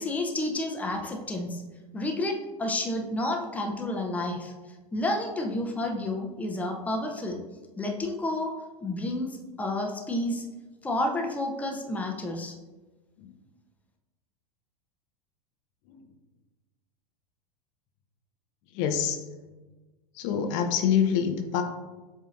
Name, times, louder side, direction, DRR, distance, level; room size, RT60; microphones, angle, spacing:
voice 1, 0.0-1.6 1.9-4.5 4.9-7.4 7.8-8.5 8.8-10.4 10.8-12.6, left 1 dB, 5° left, 1 dB, 0.6 m, -30 dB
voice 2, 18.7-19.2 20.2-21.6, left 8 dB, 50° left, 6 dB, 0.5 m, -26 dB
7.4 x 2.7 x 2.5 m, 1.2 s
hypercardioid pair, 90°, 20 cm